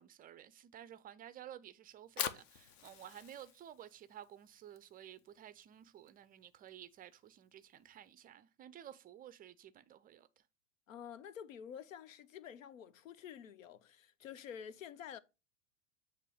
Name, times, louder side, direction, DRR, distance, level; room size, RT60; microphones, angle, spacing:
voice 1, 0.0-10.3, right 11 dB, 25° right, 0.4 m, -53 dB
Fire, 1.9-8.1, left 9 dB, 50° left, 0.8 m, -47 dB
voice 2, 10.9-15.2, left 8 dB, 90° left, 0.7 m, -49 dB
8.2 x 3.1 x 4.8 m
hypercardioid pair, 105°, 38 cm